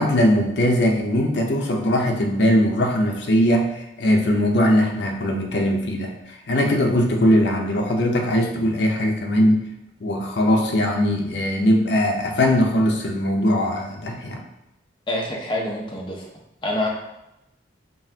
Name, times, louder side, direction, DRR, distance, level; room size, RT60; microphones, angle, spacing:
voice 1, 0.0-9.6 10.0-14.4, equal, 70° left, 1 dB, 0.6 m, -20 dB
voice 2, 15.1-16.3 16.6-16.9, left 1 dB, 25° left, -2 dB, 0.7 m, -26 dB
5.4 x 2.4 x 2.8 m, 0.89 s
head